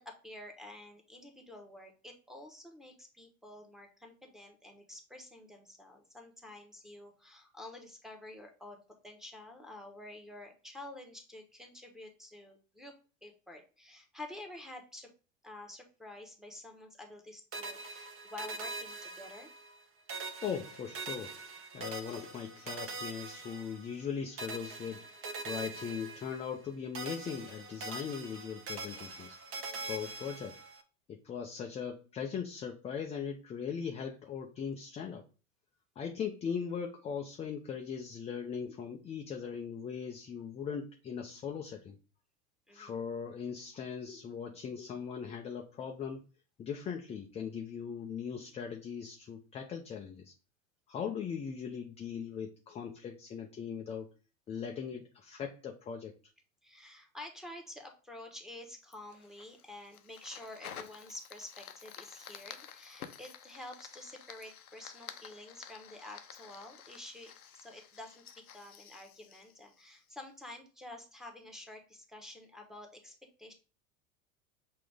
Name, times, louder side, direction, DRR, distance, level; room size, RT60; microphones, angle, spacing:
voice 1, 0.0-12.9 13.2-15.1 15.4-19.5 29.6-30.0 42.7-43.0 56.6-73.5, left 1 dB, ahead, 2 dB, 1.1 m, -49 dB
sound 1, 17.5-19.8 20.1-24.1 24.4-26.7 26.9-30.8, right 3 dB, 30° right, 0.9 m, -43 dB
voice 2, 20.4-21.3 21.7-30.6 31.1-35.3 36.0-42.0 42.7-46.2 46.6-50.3 50.9-54.1 54.5-56.1, left 7 dB, 15° left, 3 dB, 0.4 m, -39 dB
Fire, 58.9-70.3, left 8 dB, 85° left, 0.7 m, -51 dB
6.0 x 2.5 x 3.4 m, 0.35 s
hypercardioid pair, 85°, 42 cm